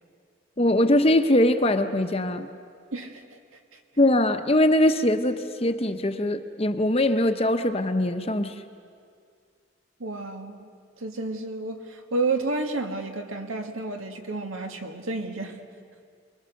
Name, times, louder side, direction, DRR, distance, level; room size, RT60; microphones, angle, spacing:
voice 1, 0.6-2.5 4.0-8.5, left 1 dB, 30° left, 8 dB, 0.9 m, -22 dB
voice 2, 2.9-3.4 3.7-3.8 10.0-10.7 11.0-15.6, right 3 dB, 85° right, 4 dB, 2.0 m, -31 dB
29.0 x 21.5 x 6.6 m, 2.3 s
head